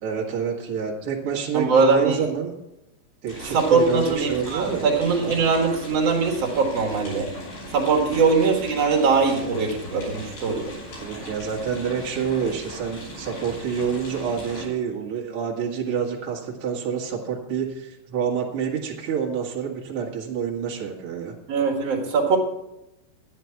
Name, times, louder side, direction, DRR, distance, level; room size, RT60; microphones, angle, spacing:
voice 1, 0.0-2.5 3.2-4.9 5.3-5.4 8.0-8.2 11.0-21.3, right 7 dB, 90° right, -2 dB, 1.2 m, -28 dB
voice 2, 1.5-2.2 3.5-7.3 7.7-10.7 21.5-22.4, right 4 dB, 65° right, 0 dB, 1.6 m, -21 dB
sound 1, 3.3-14.7, equal, 50° left, 6.9 m, -38 dB
12.5 x 10.0 x 4.6 m, 0.89 s
omnidirectional pair, 5.6 m